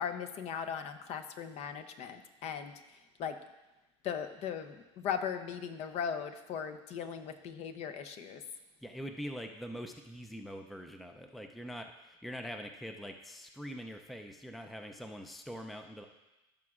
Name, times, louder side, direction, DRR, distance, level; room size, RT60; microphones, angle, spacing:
voice 1, 0.0-3.4 4.0-8.4, left 7 dB, 45° left, 8 dB, 0.7 m, -38 dB
voice 2, 8.8-16.0, equal, ahead, 5 dB, 0.5 m, -43 dB
15.5 x 6.0 x 2.5 m, 1.1 s
supercardioid pair, 115°, 15 cm